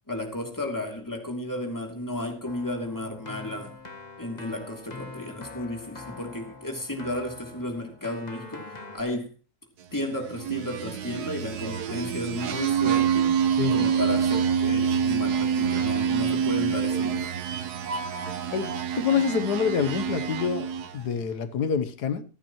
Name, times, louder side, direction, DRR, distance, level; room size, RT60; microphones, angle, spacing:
voice 1, 0.1-3.8 4.2-9.3 9.9-13.3 13.7-17.4, left 1 dB, 10° left, 2.9 m, -33 dB
Keyboard (musical), 2.4-9.0, left 3 dB, 25° left, 1.6 m, -44 dB
sound 1, 10.2-21.1, right 7 dB, 80° right, 1.5 m, -26 dB
voice 2, 18.5-22.2, left 7 dB, 85° left, 1.6 m, -27 dB
26.0 x 9.1 x 3.1 m
omnidirectional pair, 1.7 m